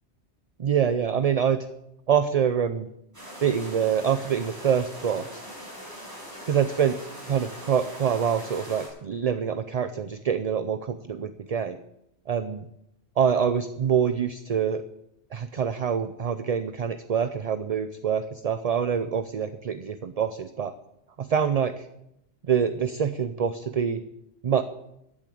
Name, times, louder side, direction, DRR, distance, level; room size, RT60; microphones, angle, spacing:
voice 1, 0.6-1.7 2.1-2.9 3.4-5.4 6.5-7.0 7.3-11.8 12.3-12.7 13.2-14.8 15.3-20.7 21.2-21.9 22.5-24.0 24.4-24.6, right 7 dB, 45° right, 11 dB, 0.5 m, -25 dB
sound 1, 3.1-8.9, equal, 15° right, 6.8 m, -41 dB
13.0 x 7.3 x 8.5 m, 0.82 s
omnidirectional pair, 1.1 m